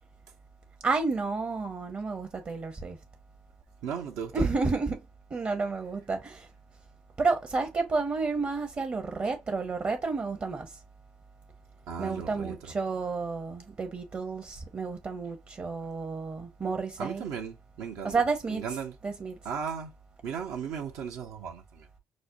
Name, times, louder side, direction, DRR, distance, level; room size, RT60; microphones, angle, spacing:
voice 1, 0.8-3.0 4.3-5.1 5.3-6.5 7.2-10.8 12.0-17.2 18.0-18.6 19.0-19.4, right 4 dB, 35° right, 0.7 m, -31 dB
voice 2, 3.8-4.5 11.9-12.7 17.0-18.2 18.5-19.0 19.4-19.9 20.2-21.9, right 7 dB, 70° right, 0.6 m, -36 dB
5.0 x 2.1 x 2.6 m
hypercardioid pair, 50°, 6 cm